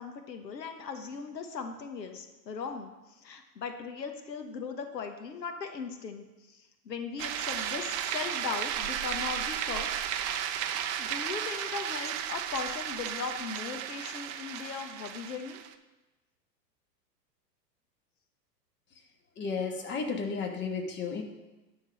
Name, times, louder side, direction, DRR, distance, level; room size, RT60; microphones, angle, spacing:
voice 1, 0.0-2.9 3.2-9.9 10.2-10.3 11.0-15.6, left 5 dB, 80° left, 5 dB, 1.2 m, -38 dB
sound 1, 7.2-15.7, right 10 dB, 25° right, 0.4 m, -34 dB
voice 2, 19.4-21.2, left 5 dB, 20° left, 2 dB, 1.4 m, -33 dB
10.5 x 3.9 x 7.3 m, 1.1 s
hypercardioid pair, 100°, 50 cm